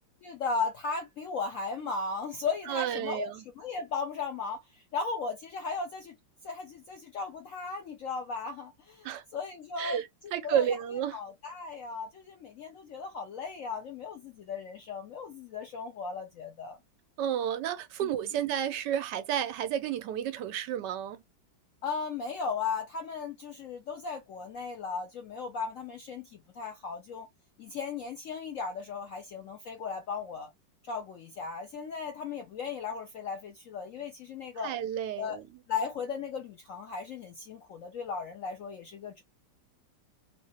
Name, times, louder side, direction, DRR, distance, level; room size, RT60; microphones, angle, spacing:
voice 1, 0.2-3.3 3.6-6.1 6.4-10.0 10.4-10.8 11.1-16.8 21.8-27.3 27.6-30.5 30.9-34.7 35.2-35.4 35.7-39.2, left 5 dB, 70° left, 0.7 m, -36 dB
voice 2, 2.7-3.4 9.0-9.2 9.8-11.2 17.2-21.2 34.6-35.4, right 9 dB, 75° right, 1.1 m, -31 dB
3.2 x 2.7 x 2.8 m
omnidirectional pair, 2.0 m